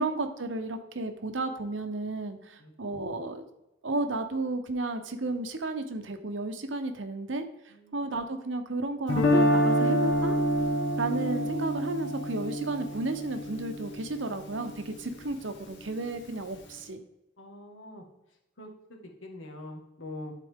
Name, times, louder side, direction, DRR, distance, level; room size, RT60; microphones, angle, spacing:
voice 1, 0.0-3.4 3.8-10.4 11.0-17.0, right 2 dB, 75° right, 7 dB, 0.9 m, -33 dB
voice 2, 7.7-8.1 17.4-18.0 18.6-20.3, left 1 dB, 85° left, 1 dB, 1.7 m, -44 dB
Guitar, 9.1-15.1, equal, 65° left, 1.4 m, -27 dB
12.0 x 4.1 x 3.6 m, 0.94 s
head